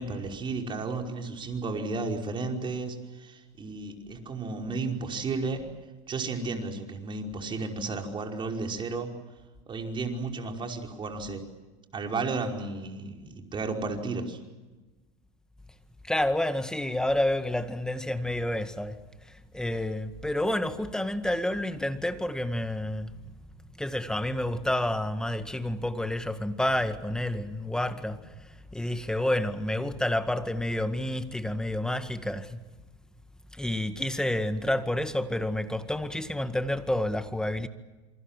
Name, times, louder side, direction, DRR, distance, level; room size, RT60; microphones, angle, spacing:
voice 1, 0.0-5.6 6.1-9.1 9.7-11.4 11.9-14.4, right 3 dB, 30° right, 5.3 m, -33 dB
voice 2, 16.0-19.0 19.3-23.2 23.8-32.6 33.5-37.7, left 1 dB, 5° left, 1.9 m, -29 dB
27.5 x 24.5 x 7.5 m
supercardioid pair, 100°, 16 cm